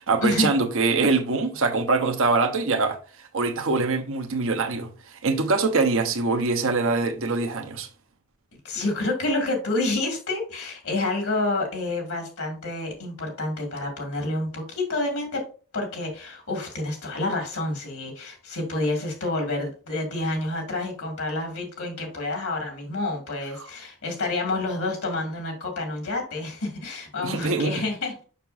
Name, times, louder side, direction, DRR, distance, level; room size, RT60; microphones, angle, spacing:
voice 1, 0.0-3.0 3.3-4.9 5.2-7.9 23.6-23.7 27.2-27.8, right 3 dB, 60° right, 1.0 m, -23 dB
voice 2, 8.6-15.4 15.7-28.2, left 2 dB, 65° left, 2.3 m, -28 dB
6.6 x 6.0 x 2.6 m
head